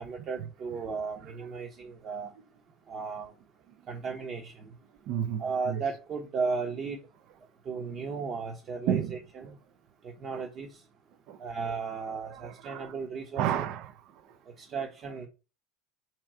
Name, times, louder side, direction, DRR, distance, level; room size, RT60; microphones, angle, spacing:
voice 1, 0.0-2.3 2.9-3.3 3.9-4.8 5.4-7.0 7.6-9.6 10.0-10.8 11.4-13.7 14.6-15.3, right 5 dB, 45° right, 0.7 m, -35 dB
voice 2, 5.1-5.8 8.9-9.2 9.4-9.5 10.3-10.5 11.3-11.4 12.1-13.0 13.4-14.4, right 10 dB, 60° right, 0.3 m, -32 dB
4.2 x 2.3 x 3.6 m
hypercardioid pair, 90°, 0 cm